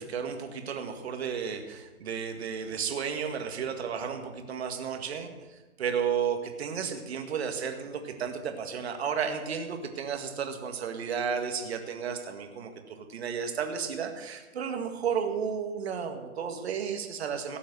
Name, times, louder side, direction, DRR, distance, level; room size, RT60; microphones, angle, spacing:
voice 1, 0.0-17.6, right 7 dB, 50° right, 5 dB, 1.9 m, -33 dB
17.5 x 7.1 x 6.5 m, 1.1 s
figure-of-eight pair, 135°, 41 cm